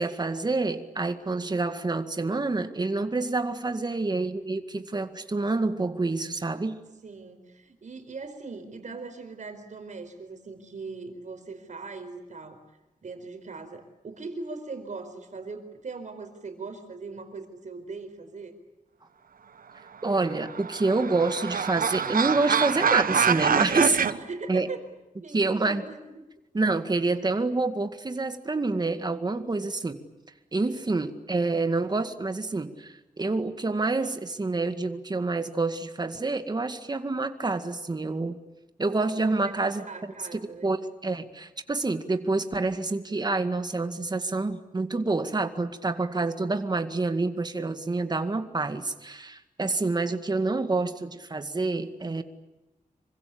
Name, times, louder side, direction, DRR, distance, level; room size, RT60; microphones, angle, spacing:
voice 1, 0.0-6.8 20.0-24.0 24.5-24.7 25.3-25.9 26.5-30.0 30.5-38.4 38.8-52.2, right 3 dB, 30° right, 8 dB, 2.0 m, -27 dB
voice 2, 7.0-12.6 13.0-18.5 23.6-24.8 25.2-26.2 30.6-31.1 39.4-40.7, right 4 dB, 60° right, 8 dB, 4.6 m, -40 dB
sound 1, 20.2-24.1, right 7 dB, 85° right, 1.1 m, -25 dB
27.5 x 25.0 x 8.7 m, 1.0 s
wide cardioid pair, 150°, 14 cm